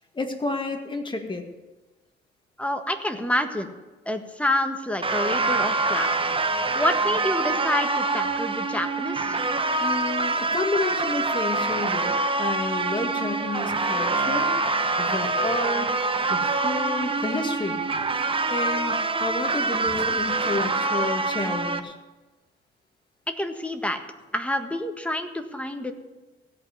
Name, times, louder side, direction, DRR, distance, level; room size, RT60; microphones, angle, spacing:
voice 1, 0.1-1.5 9.8-14.5 15.0-15.9 16.3-17.8 18.5-22.0, left 2 dB, 25° left, 4 dB, 2.1 m, -30 dB
voice 2, 2.6-3.7 4.0-6.1 6.7-9.4 23.4-24.0 24.3-25.9, left 1 dB, 5° left, 6 dB, 1.5 m, -28 dB
sound 1, 5.0-21.8, right 3 dB, 25° right, 1.0 m, -25 dB
16.5 x 5.7 x 9.6 m, 1.2 s
cardioid pair, 90°, 20 cm